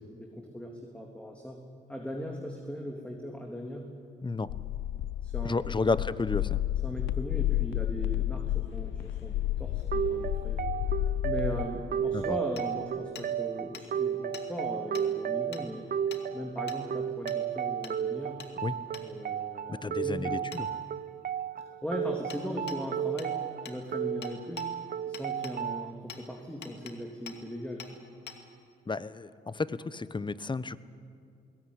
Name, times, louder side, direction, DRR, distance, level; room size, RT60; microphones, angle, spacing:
voice 1, 0.0-1.6 1.9-3.8 5.2-6.0 6.8-10.6 11.2-15.8 16.3-18.4 19.0-20.5 21.8-23.4 23.7-24.7 25.1-27.8, equal, 5° left, 1 dB, 3.2 m, -39 dB
sound 1, 4.5-11.7, left 13 dB, 85° left, 0.6 m, -31 dB
voice 2, 5.4-6.6 12.1-12.4 18.6-18.7 19.7-20.7 28.9-30.8, left 3 dB, 25° left, 16 dB, 1.0 m, -32 dB
sound 2, 9.9-25.9, right 9 dB, 55° right, 0.8 m, -33 dB
Hammer, 12.6-12.7 13.2-13.3 13.7-13.9 14.3-14.5 14.9-15.1 15.5-15.6 16.1-16.2 16.7-16.8 17.3-17.4 17.8-18.0 18.4-18.5 18.9-19.1 20.5-20.6 22.3-22.4 22.7-22.8 23.2-23.3 23.7-23.8 24.2-24.7 25.1-25.6 26.1-26.2 26.6-27.0 27.3-27.4 27.8-27.9 28.3-28.4, left 7 dB, 65° left, 2.4 m, -44 dB
21.0 x 18.0 x 9.9 m, 2.3 s
supercardioid pair, 55°, 19 cm